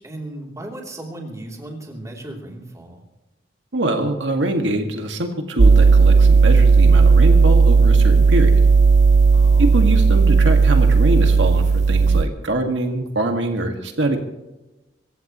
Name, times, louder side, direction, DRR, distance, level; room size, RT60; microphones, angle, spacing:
voice 1, 0.0-3.0 9.3-9.8, right 1 dB, 20° right, 0 dB, 3.2 m, -36 dB
voice 2, 3.7-8.5 9.6-14.2, right 1 dB, 80° right, 4 dB, 1.9 m, -23 dB
sound 1, 5.6-12.2, right 4 dB, 40° right, 0.4 m, -13 dB
26.0 x 15.5 x 3.1 m, 1.0 s
head